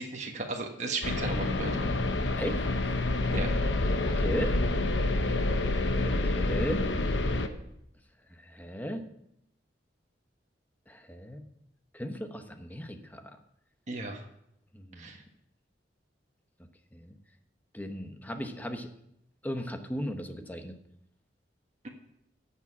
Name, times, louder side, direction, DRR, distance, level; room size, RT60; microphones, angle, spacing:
voice 1, 0.0-1.9 3.3-3.5 13.9-14.2 15.0-15.2, right 3 dB, 40° right, 1 dB, 1.4 m, -35 dB
sound 1, 1.0-7.5, left 2 dB, 80° left, 1.0 m, -28 dB
voice 2, 2.4-2.9 4.1-4.6 6.1-6.9 8.3-9.0 10.9-11.5 11.9-13.4 14.7-15.1 16.9-17.2 17.7-18.9 19.4-20.8, equal, 10° left, 6 dB, 0.9 m, -36 dB
10.5 x 7.4 x 7.2 m, 0.78 s
head